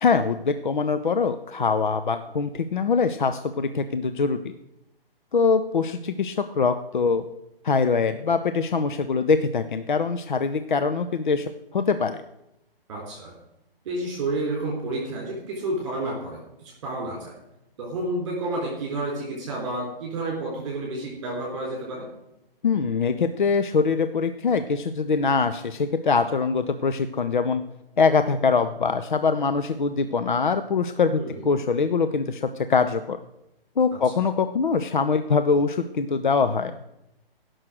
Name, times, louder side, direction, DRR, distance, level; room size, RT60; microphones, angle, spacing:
voice 1, 0.0-4.5 5.3-7.2 7.6-12.2 22.6-27.6 28.0-33.2 33.8-36.8, left 5 dB, 55° left, 9 dB, 0.7 m, -23 dB
voice 2, 12.9-13.3 13.8-17.3 17.8-22.1 31.2-31.5 33.9-34.1, right 2 dB, 30° right, -3 dB, 4.0 m, -30 dB
16.5 x 6.4 x 6.3 m, 0.89 s
figure-of-eight pair, 135°, 30 cm